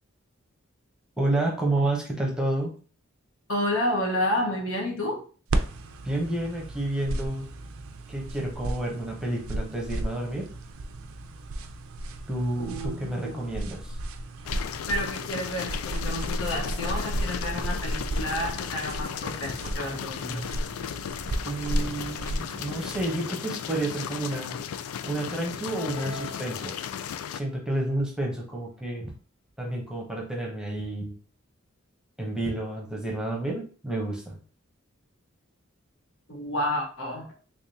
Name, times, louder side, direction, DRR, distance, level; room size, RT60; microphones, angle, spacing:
voice 1, 1.2-2.8 6.0-7.5 8.1-10.5 12.3-14.0 21.4-24.6 25.0-26.8 27.3-29.1 29.6-31.1 32.2-34.4, right 2 dB, 5° right, -1 dB, 0.8 m, -30 dB
voice 2, 3.5-5.2 12.6-13.4 14.9-20.5 36.3-37.4, left 1 dB, 75° left, 0 dB, 1.1 m, -30 dB
Makeup brush skin, 5.5-23.1, right 1 dB, 80° right, 0.5 m, -34 dB
sound 1, 14.4-27.4, left 8 dB, 90° left, 0.3 m, -35 dB
sound 2, 25.7-27.3, left 6 dB, 40° left, 1.7 m, -42 dB
3.5 x 3.3 x 2.7 m, 0.39 s
head